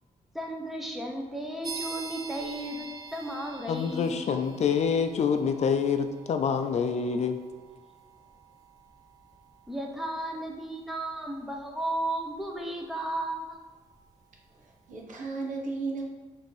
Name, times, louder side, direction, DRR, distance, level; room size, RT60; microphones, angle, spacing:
voice 1, 0.3-4.3 9.7-13.6, right 1 dB, ahead, 1 dB, 0.9 m, -34 dB
sound 1, 1.6-14.2, right 4 dB, 25° right, 1.0 m, -47 dB
voice 2, 3.7-7.4, left 6 dB, 55° left, 7 dB, 0.5 m, -26 dB
voice 3, 14.5-16.0, right 3 dB, 70° right, 0 dB, 1.2 m, -35 dB
6.7 x 3.5 x 4.9 m, 1.3 s
cardioid pair, 130°, 14 cm